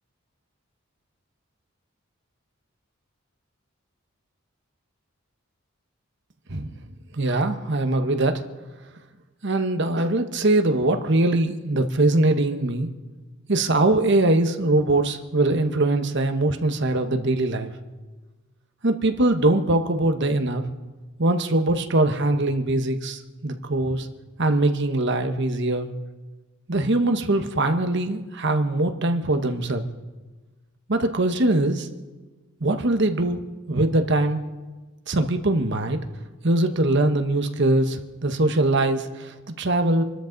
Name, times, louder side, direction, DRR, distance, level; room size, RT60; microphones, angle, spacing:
voice 1, 7.1-8.4 9.4-12.9 13.5-17.7 18.8-20.6 21.2-24.1 24.4-25.9 26.7-29.8 30.9-31.9 32.6-33.4 33.7-34.4 35.1-36.0 36.4-40.0, right 2 dB, 55° right, 7 dB, 1.2 m, -22 dB
26.5 x 13.0 x 4.0 m, 1.3 s
head